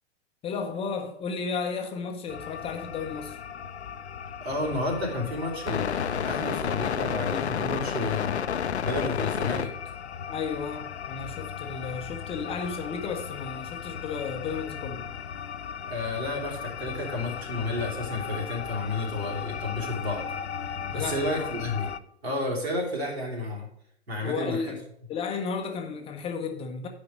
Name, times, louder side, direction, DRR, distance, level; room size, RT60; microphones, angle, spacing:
voice 1, 0.4-3.4 10.3-15.1 20.9-21.5 24.2-24.8 25.1-26.9, left 5 dB, 15° left, 0.6 m, -33 dB
sound 1, 2.3-22.0, left 8 dB, 75° left, 0.5 m, -34 dB
voice 2, 4.4-8.4 8.8-9.7 15.9-20.3 20.9-21.9 22.2-23.7 24.1-24.7, left 2 dB, 70° right, 3.3 m, -31 dB
9.3 x 5.3 x 5.3 m
figure-of-eight pair, 105°, 33 cm